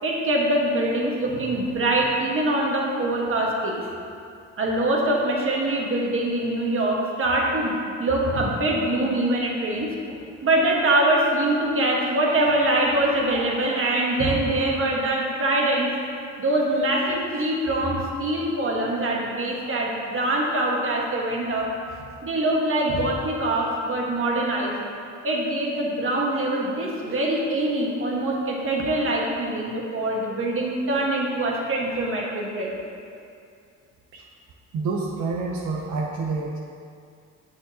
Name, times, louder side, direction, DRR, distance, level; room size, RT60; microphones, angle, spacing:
voice 1, 0.0-3.8 4.6-9.9 10.4-15.9 16.4-21.7 22.2-24.7 25.2-32.7, right 1 dB, 45° right, -2 dB, 1.4 m, -24 dB
voice 2, 34.7-36.6, right 4 dB, 75° right, -1 dB, 0.7 m, -28 dB
8.9 x 6.4 x 2.8 m, 2.4 s
cardioid pair, 90°, 30 cm